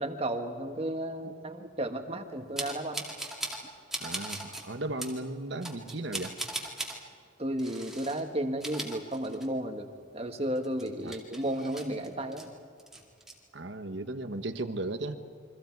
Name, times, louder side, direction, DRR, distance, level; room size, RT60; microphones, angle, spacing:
voice 1, 0.0-3.1 7.4-9.9 10.1-12.5, right 1 dB, 30° right, 5 dB, 1.6 m, -33 dB
sound 1, 2.6-3.6 3.9-4.6 5.0-5.2 5.6-7.0 7.6-8.2 8.5-9.7 10.0-10.1 10.6-12.5 12.8-13.3, right 1 dB, ahead, 2.3 m, -38 dB
voice 2, 4.0-6.4 11.0-11.1 13.5-15.2, right 2 dB, 65° right, 8 dB, 1.4 m, -36 dB
29.0 x 24.5 x 4.8 m, 2.3 s
head